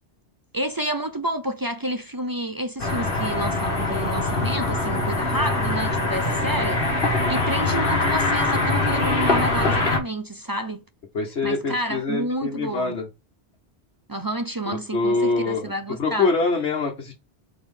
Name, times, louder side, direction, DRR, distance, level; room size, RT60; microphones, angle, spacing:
voice 1, 0.5-10.8 11.4-13.0 14.1-16.3, right 1 dB, 30° right, 0.5 m, -29 dB
sound 1, 2.8-10.0, left 2 dB, 55° left, 1.7 m, -23 dB
voice 2, 7.2-7.5 11.1-13.1 14.7-15.7 16.0-17.1, left 3 dB, 75° left, 1.5 m, -25 dB
4.4 x 4.2 x 5.3 m
omnidirectional pair, 1.1 m